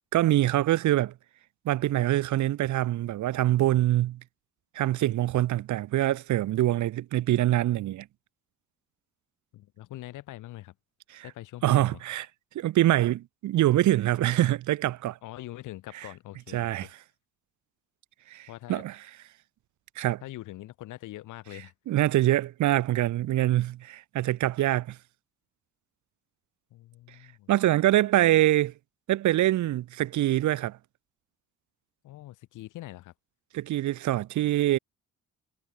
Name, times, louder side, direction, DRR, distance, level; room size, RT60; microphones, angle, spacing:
voice 1, 0.1-1.1 1.6-4.2 4.7-8.1 11.1-11.2 11.6-12.3 12.5-15.2 16.5-16.9 18.3-19.0 20.0-20.2 21.9-25.0 27.5-28.7 29.1-30.8 33.5-34.8, right 14 dB, 70° right, 1.0 m, -24 dB
voice 2, 9.5-10.7 11.2-12.0 15.2-16.9 18.5-18.8 20.2-21.7 26.7-27.7 32.0-33.1, left 15 dB, 90° left, 4.3 m, -43 dB
cardioid pair, 90°, 30 cm